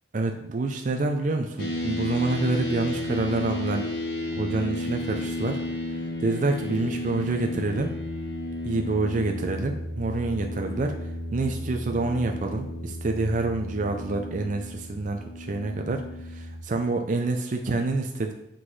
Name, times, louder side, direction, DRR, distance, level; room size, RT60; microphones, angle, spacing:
voice 1, 0.1-3.9 4.3-5.6 5.9-7.9 8.6-18.3, right 3 dB, 45° right, 4 dB, 0.4 m, -27 dB
sound 1, 1.6-16.6, left 1 dB, 60° left, 1.3 m, -33 dB
8.2 x 3.8 x 3.2 m, 0.82 s
head